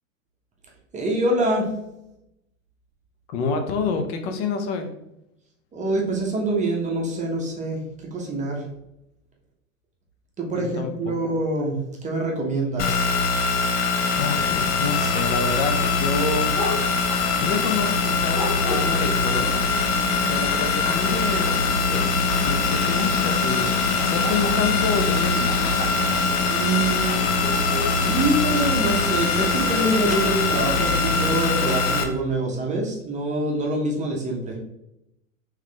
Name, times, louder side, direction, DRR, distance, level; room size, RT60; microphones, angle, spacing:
voice 1, 0.9-1.7 5.7-8.6 10.4-13.2 26.5-27.2 27.8-34.6, right 2 dB, 15° right, -1 dB, 0.7 m, -25 dB
voice 2, 3.3-4.9 10.5-11.1 14.2-16.5 17.4-19.7 20.3-22.1 22.4-23.7 23.9-25.8, left 4 dB, 50° left, 6 dB, 0.8 m, -28 dB
sound 1, 12.8-32.0, left 4 dB, 25° left, 0.4 m, -23 dB
sound 2, 14.0-31.3, left 3 dB, 65° left, 1.4 m, -30 dB
3.6 x 3.2 x 3.2 m, 0.85 s
hypercardioid pair, 105°, 41 cm